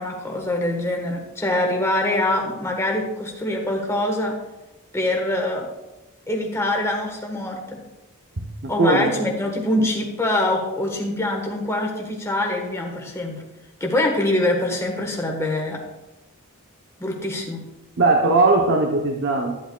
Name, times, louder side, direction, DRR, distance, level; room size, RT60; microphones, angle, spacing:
voice 1, 0.0-4.4 4.9-5.7 6.3-7.8 8.7-13.4 13.8-15.8 17.0-17.6, left 1 dB, 15° left, 1 dB, 1.4 m, -24 dB
voice 2, 8.4-9.1 18.0-19.6, right 2 dB, 55° right, 1 dB, 0.9 m, -19 dB
11.5 x 10.0 x 2.3 m, 1.0 s
head